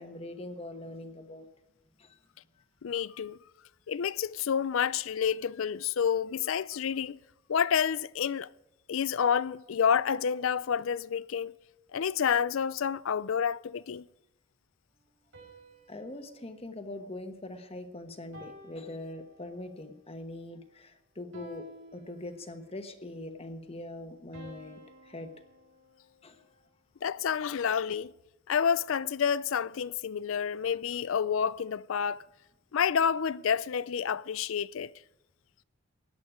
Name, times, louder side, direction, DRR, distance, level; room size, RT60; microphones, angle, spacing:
voice 1, 0.0-1.5 2.0-2.2 15.9-25.3 26.2-26.5, left 1 dB, 30° left, 1.2 m, -42 dB
voice 2, 2.8-3.4 3.9-7.2 7.5-8.5 8.9-11.5 11.9-14.1 27.0-28.1 28.5-32.2 32.7-34.9, left 7 dB, 65° left, 0.4 m, -29 dB
sound 1, 15.3-17.7 18.3-19.8 21.3-22.8 24.3-26.6, left 1 dB, 60° right, 5.5 m, -53 dB
17.0 x 10.5 x 5.0 m
head